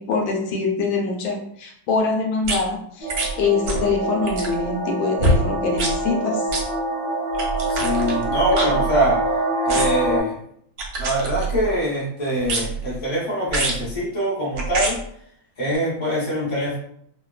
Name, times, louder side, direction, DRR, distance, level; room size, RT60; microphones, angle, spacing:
voice 1, 0.0-6.5, left 4 dB, 80° left, 1 dB, 1.3 m, -24 dB
sound 1, 2.4-2.6 3.1-3.3 3.7-3.9 4.2-4.6 5.2-5.4 5.8-6.0 6.5-6.6 7.3-9.3 9.7-10.1 10.8-11.7 12.4-12.9 13.5-13.8 14.5-14.9 15.7-15.8, right 2 dB, 70° right, 0.9 m, -25 dB
sound 2, 3.0-10.2, right 2 dB, 35° right, 0.4 m, -25 dB
voice 2, 7.7-9.2 9.6-10.4 11.0-15.0 15.6-16.8, equal, 20° left, -8 dB, 0.8 m, -23 dB
3.1 x 2.1 x 2.3 m, 0.67 s
omnidirectional pair, 2.1 m